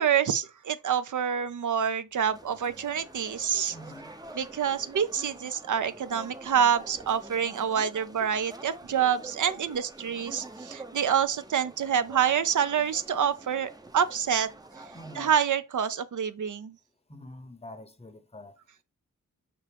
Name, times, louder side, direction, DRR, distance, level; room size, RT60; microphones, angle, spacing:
voice 1, 0.0-3.8 4.3-14.5 15.2-16.7, right 8 dB, 70° right, 0.6 m, -27 dB
sound 1, 2.2-15.3, right 2 dB, 10° right, 0.5 m, -47 dB
voice 2, 3.7-4.2 14.9-15.3 17.1-18.6, left 1 dB, 20° left, 0.7 m, -45 dB
5.8 x 2.5 x 3.4 m
wide cardioid pair, 85°, 32 cm